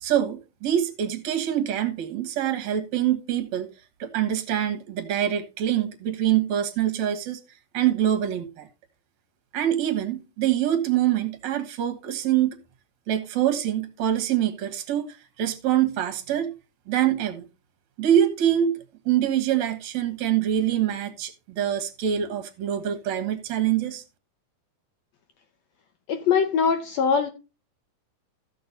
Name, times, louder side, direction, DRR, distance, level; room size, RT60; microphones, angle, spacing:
voice 1, 0.0-3.7 4.0-7.4 7.7-8.7 9.5-12.6 13.1-16.5 16.9-17.4 18.0-18.8 19.1-24.0, right 11 dB, 60° right, 2.5 m, -25 dB
voice 2, 26.1-27.3, left 6 dB, 70° left, 1.6 m, -22 dB
14.5 x 6.6 x 4.0 m
omnidirectional pair, 3.8 m